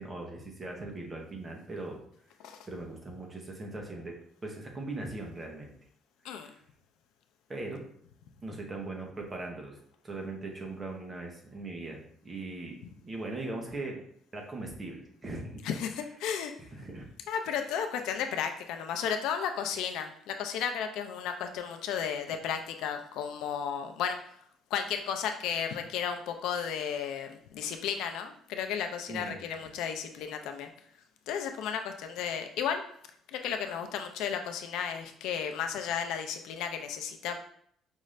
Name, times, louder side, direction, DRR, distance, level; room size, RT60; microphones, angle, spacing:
voice 1, 0.0-2.0 2.7-4.2 4.4-5.7 6.2-6.6 7.5-7.8 8.4-9.8 10.0-14.0 14.3-15.6 16.7-17.0 17.5-17.6 29.1-29.4, right 2 dB, 15° right, 1 dB, 0.8 m, -40 dB
voice 2, 15.6-16.5 17.3-24.3 24.7-30.7 31.3-32.8 33.3-37.4, left 7 dB, 75° left, 6 dB, 0.5 m, -34 dB
5.3 x 2.5 x 3.2 m, 0.66 s
cardioid pair, 175°, 0 cm